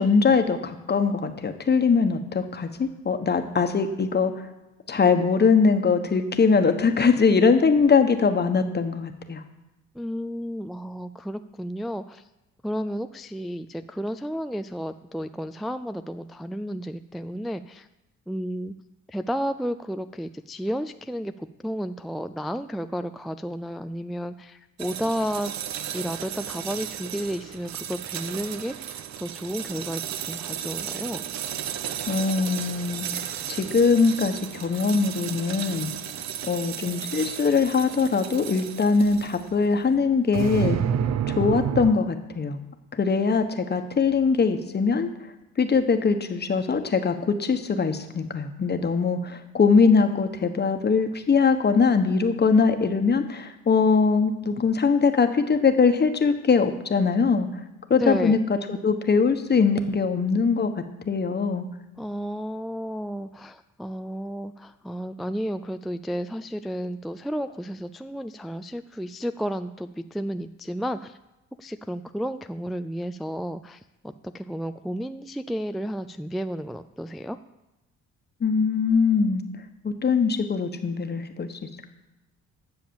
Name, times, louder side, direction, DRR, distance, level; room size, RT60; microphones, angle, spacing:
voice 1, 0.0-4.5 4.9-9.4 32.1-35.9 36.4-40.8 41.3-42.6 42.9-45.1 45.6-57.5 57.9-61.6 78.4-79.4 79.8-81.6, left 5 dB, 35° left, 7 dB, 1.3 m, -22 dB
voice 2, 10.0-12.2 12.6-17.9 18.3-18.7 19.1-25.5 25.9-31.2 57.9-58.4 62.0-71.2 71.6-77.4, equal, ahead, 9 dB, 0.3 m, -32 dB
sound 1, 24.8-39.6 40.3-41.9, right 9 dB, 65° right, 0.7 m, -32 dB
10.5 x 7.1 x 7.1 m, 1.0 s
cardioid pair, 90°, 30 cm